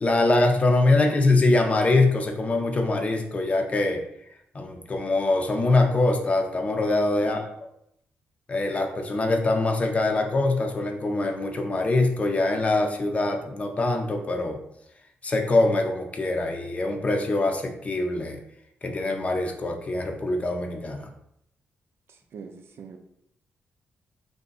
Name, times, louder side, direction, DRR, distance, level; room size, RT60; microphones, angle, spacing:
voice 1, 0.0-4.0 4.5-7.4 8.5-14.6 15.2-18.4 18.8-21.1, left 2 dB, 30° left, 4 dB, 0.5 m, -23 dB
voice 2, 0.7-1.2 7.2-7.5 22.1-23.0, right 6 dB, 70° right, 5 dB, 0.5 m, -44 dB
3.3 x 2.6 x 3.9 m, 0.76 s
cardioid pair, 115°, 4 cm